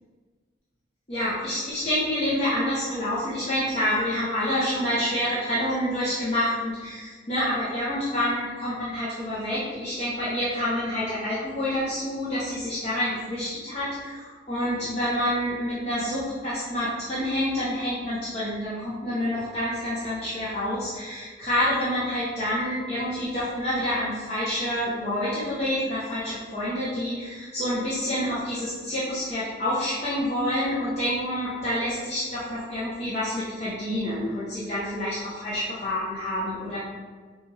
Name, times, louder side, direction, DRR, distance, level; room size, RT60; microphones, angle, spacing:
voice 1, 1.1-36.8, left 1 dB, 35° left, -10 dB, 0.8 m, -28 dB
5.6 x 2.4 x 3.2 m, 1.5 s
head